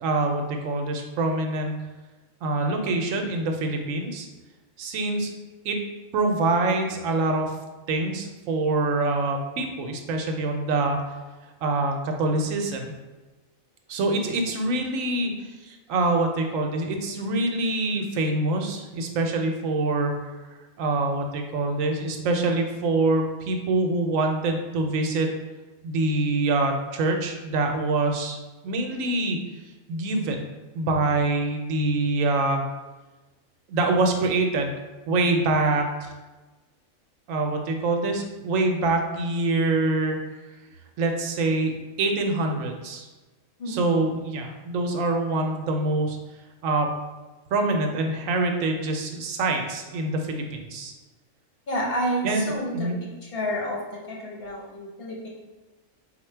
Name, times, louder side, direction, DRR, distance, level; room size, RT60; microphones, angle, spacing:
voice 1, 0.0-1.8 2.4-4.3 4.8-5.3 5.6-5.8 6.1-7.5 7.9-11.0 11.6-12.9 13.9-15.3 15.6-20.1 20.8-25.3 25.8-28.4 28.6-29.4 29.9-30.4 30.7-32.6 33.7-34.8 35.1-36.1 37.3-40.2 41.0-43.1 43.7-46.2 46.6-46.9 47.5-50.9 52.2-53.0, right 2 dB, 80° right, 3 dB, 1.0 m, -25 dB
voice 2, 51.7-52.9 53.2-55.3, equal, 50° left, -3 dB, 1.0 m, -30 dB
4.3 x 2.2 x 4.3 m, 1.2 s
omnidirectional pair, 1.4 m